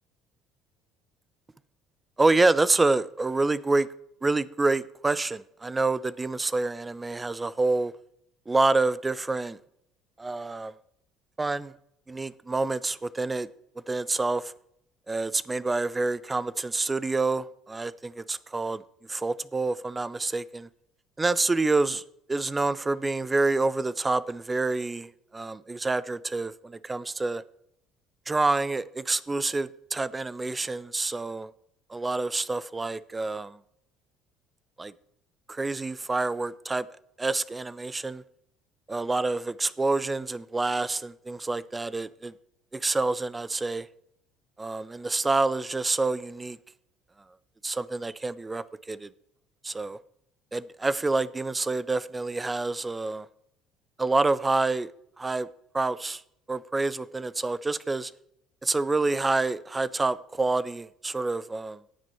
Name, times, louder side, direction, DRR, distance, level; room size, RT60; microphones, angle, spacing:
voice 1, 2.2-3.9 4.2-7.9 8.5-9.6 10.2-10.7 11.4-11.7 12.1-13.5 13.9-14.5 15.1-18.8 19.1-20.7 21.2-22.0 22.3-27.4 28.3-31.5 31.9-33.6 34.8-34.9 35.5-36.9 37.2-38.2 38.9-42.3 42.7-43.9 44.6-46.6 47.6-49.1 49.6-50.0 50.5-53.3 54.0-54.9 55.2-55.5 55.7-56.2 56.5-58.1 58.6-61.8, right 3 dB, 20° right, 0.6 m, -27 dB
17.5 x 6.1 x 4.4 m
hypercardioid pair, 60°, 0 cm